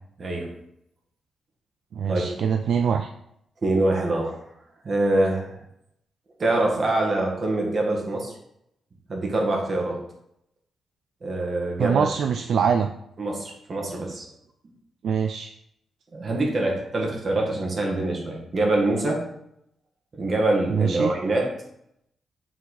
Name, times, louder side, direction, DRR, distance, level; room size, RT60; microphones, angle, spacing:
voice 1, 0.2-0.5 2.0-2.3 3.6-4.4 4.8-5.6 6.4-8.3 9.1-10.0 11.2-12.4 13.2-14.3 16.1-19.2 20.1-21.5, right 2 dB, 35° right, 0 dB, 1.5 m, -24 dB
voice 2, 1.9-3.1 11.8-12.9 15.0-15.5 20.7-21.1, right 6 dB, 60° right, 6 dB, 0.3 m, -23 dB
7.5 x 4.1 x 4.1 m, 0.76 s
wide cardioid pair, 170°, 0 cm